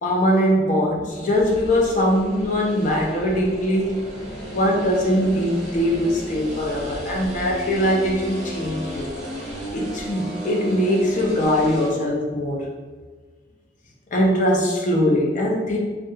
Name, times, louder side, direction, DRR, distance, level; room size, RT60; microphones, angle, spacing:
voice 1, 0.0-4.0 4.5-9.1 9.7-12.7 14.1-15.8, equal, 40° left, -1 dB, 0.4 m, -21 dB
sound 1, 1.1-11.9, equal, 35° right, 0.7 m, -34 dB
2.2 x 2.1 x 2.9 m, 1.4 s
head